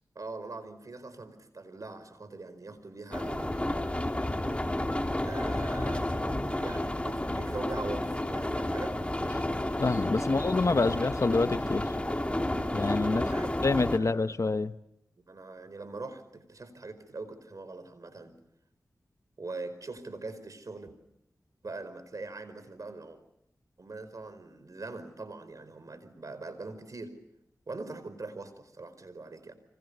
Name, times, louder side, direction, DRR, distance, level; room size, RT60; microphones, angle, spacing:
voice 1, 0.1-3.5 5.2-6.2 6.6-9.0 10.2-10.4 10.8-11.0 13.0-13.5 13.9-14.4 15.2-18.4 19.4-20.9 21.6-23.2 23.8-27.2 27.7-29.5, right 3 dB, 60° right, 12 dB, 4.8 m, -42 dB
sound 1, 3.1-14.0, left 1 dB, 20° left, 3.2 m, -31 dB
voice 2, 9.8-11.9 12.7-13.2 13.6-14.7, left 3 dB, 50° left, 12 dB, 1.0 m, -27 dB
30.0 x 25.5 x 6.9 m, 0.79 s
cardioid pair, 40°, 7 cm